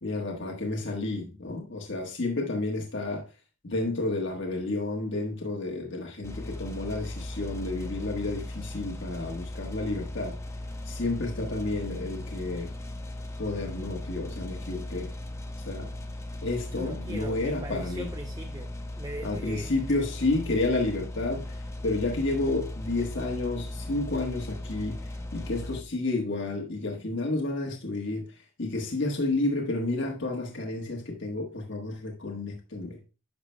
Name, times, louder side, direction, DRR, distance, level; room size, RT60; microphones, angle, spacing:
voice 1, 0.0-3.2 3.6-10.3 10.8-12.7 13.4-15.1 15.6-15.9 16.4-18.1 19.2-25.0 25.3-28.2 28.6-33.0, left 2 dB, 65° left, 1.4 m, -31 dB
sound 1, 6.2-25.8, left 1 dB, 15° left, 0.7 m, -37 dB
voice 2, 16.7-19.7 20.8-20.9, right 2 dB, 20° right, 0.5 m, -40 dB
11.0 x 5.9 x 2.2 m
head